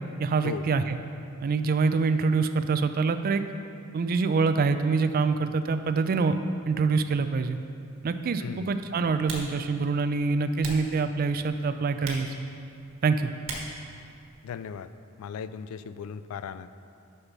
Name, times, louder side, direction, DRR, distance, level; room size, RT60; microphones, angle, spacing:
voice 1, 0.2-1.0 1.4-3.4 3.9-6.4 6.7-7.6 8.0-12.3 13.0-13.3, right 4 dB, 40° right, 10 dB, 0.3 m, -25 dB
Typing, 7.4-14.9, right 2 dB, 65° right, 1.4 m, -44 dB
voice 2, 8.4-8.7 14.4-14.9 15.2-16.7, left 7 dB, 75° left, 14 dB, 0.3 m, -37 dB
6.5 x 5.7 x 6.0 m, 2.5 s
head